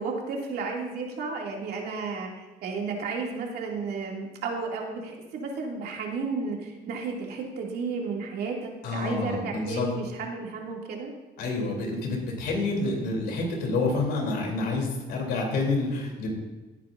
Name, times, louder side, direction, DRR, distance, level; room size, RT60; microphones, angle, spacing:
voice 1, 0.0-2.3 2.6-11.1, right 4 dB, 70° right, -1 dB, 2.6 m, -33 dB
voice 2, 8.8-9.9 11.4-16.3, left 3 dB, 75° left, 0 dB, 3.3 m, -28 dB
17.0 x 9.3 x 2.6 m, 1.2 s
cardioid pair, 110°, 17 cm